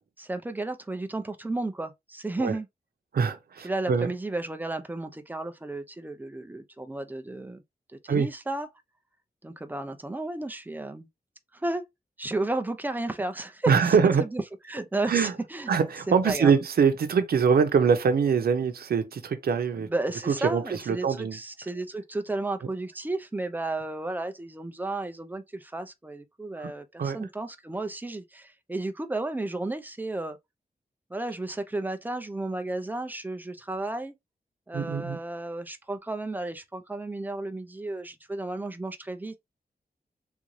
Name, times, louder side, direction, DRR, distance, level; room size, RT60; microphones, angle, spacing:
voice 1, 0.2-2.7 3.6-7.6 8.0-8.7 9.4-11.1 11.5-11.9 12.2-14.4 14.7-15.7 16.1-16.6 19.7-30.4 31.1-34.1 34.7-39.4, right 2 dB, 10° right, 0.4 m, -33 dB
voice 2, 3.1-4.1 8.1-8.3 13.7-14.2 15.1-15.3 15.7-19.9 20.3-21.4 26.6-26.7 27.0-27.2 34.7-35.2, right 6 dB, 90° right, 0.7 m, -23 dB
3.6 x 2.6 x 3.1 m
wide cardioid pair, 180°, 15 cm